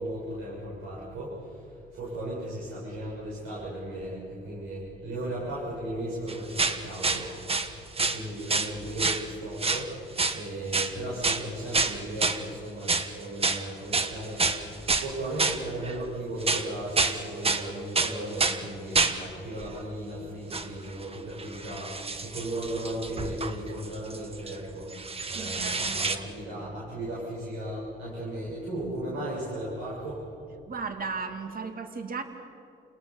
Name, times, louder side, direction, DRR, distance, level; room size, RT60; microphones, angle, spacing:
voice 1, 0.0-1.7 1.9-7.3 7.6-9.9 10.3-24.9 25.3-30.2, right 1 dB, 90° right, -7 dB, 7.1 m, -36 dB
sound 1, 6.3-7.7 8.0-8.7 9.0-9.2 9.6-9.8 10.2-10.4 10.7-10.9 11.2-11.4 11.7-12.4 12.9-13.1 13.4-13.6 13.9-15.1 15.4-16.1 16.4-17.2 17.4-17.7 18.0-18.6 18.9-19.2 19.6-19.8 20.5-20.7 21.0-24.6 24.9-26.2, right 3 dB, 30° right, 1.5 m, -28 dB
voice 2, 25.3-26.1 30.7-32.2, right 5 dB, 45° right, 6 dB, 2.3 m, -35 dB
30.0 x 19.5 x 7.0 m, 2.5 s
cardioid pair, 90°, 20 cm